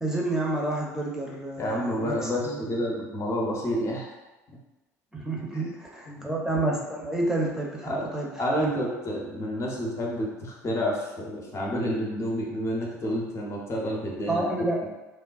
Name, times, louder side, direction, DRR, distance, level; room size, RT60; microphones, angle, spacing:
voice 1, 0.0-2.8 5.1-8.3 8.6-8.9 14.3-14.8, right 2 dB, 5° right, -3 dB, 0.7 m, -29 dB
voice 2, 1.6-4.0 5.5-5.7 6.1-6.3 7.8-8.1 8.4-14.7, equal, 30° left, -2 dB, 0.7 m, -29 dB
3.2 x 2.2 x 2.4 m, 1.1 s
figure-of-eight pair, 60°, 9 cm